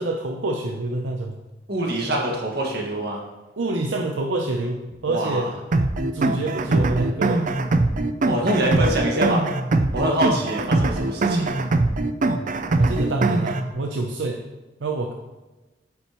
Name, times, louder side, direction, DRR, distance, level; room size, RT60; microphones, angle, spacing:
voice 1, 0.0-1.4 3.6-5.5 6.1-7.5 12.8-14.4 14.8-15.1, right 2 dB, 90° right, 3 dB, 0.7 m, -26 dB
voice 2, 1.7-3.2 5.1-5.5 8.2-9.4 9.9-11.5, right 1 dB, 60° right, 0 dB, 1.8 m, -24 dB
sound 1, 5.7-13.7, right 2 dB, 45° right, 0.5 m, -22 dB
8.8 x 8.2 x 3.0 m, 1.1 s
head